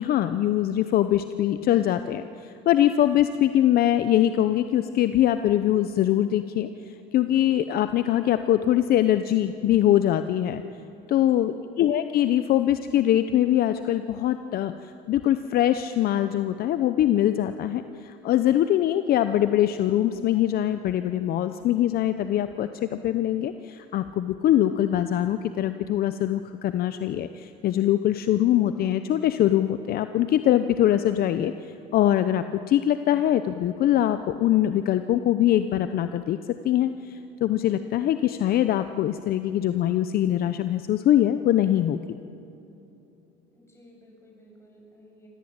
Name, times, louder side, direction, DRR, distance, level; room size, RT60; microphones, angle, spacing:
voice 1, 0.0-10.6 11.1-42.0, left 12 dB, 55° left, 10 dB, 0.8 m, -23 dB
voice 2, 11.0-11.5 43.5-45.3, equal, 15° left, -1 dB, 7.9 m, -54 dB
25.5 x 17.0 x 8.9 m, 2.9 s
cardioid pair, 115°, 19 cm